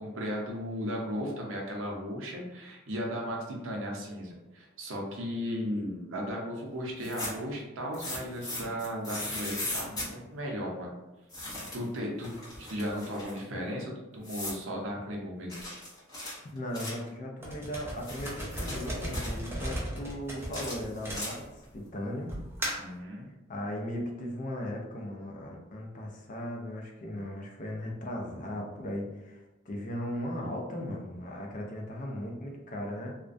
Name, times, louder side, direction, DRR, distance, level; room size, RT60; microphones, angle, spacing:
voice 1, 0.0-10.9 11.7-12.3 12.6-15.6 22.8-23.3, equal, 65° right, -1 dB, 0.6 m, -36 dB
sound 1, 6.9-7.5 7.9-10.1 11.3-11.9 12.2-13.4 14.2-14.6 15.5-17.1 17.8-19.4 20.4-21.6, left 1 dB, 20° left, 0.9 m, -38 dB
voice 2, 16.4-22.4 23.5-33.1, left 1 dB, 40° left, 0 dB, 0.5 m, -37 dB
sound 2, 17.4-21.7 22.3-23.0, equal, 10° right, 0.5 m, -36 dB
2.4 x 2.1 x 2.5 m, 1.1 s
head